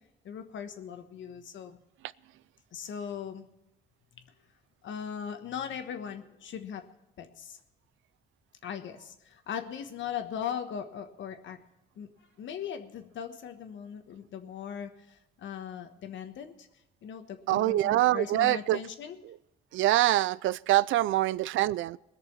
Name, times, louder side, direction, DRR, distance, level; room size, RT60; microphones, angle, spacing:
voice 1, 0.2-1.8 2.7-3.5 4.2-4.3 4.8-6.8 7.2-7.6 8.6-11.6 12.0-12.1 12.4-16.7 17.0-19.2, left 8 dB, 70° left, 1.3 m, -39 dB
voice 2, 17.5-18.8 19.7-22.0, right 15 dB, 80° right, 0.4 m, -25 dB
19.5 x 6.7 x 7.1 m
cardioid pair, 90°, 20 cm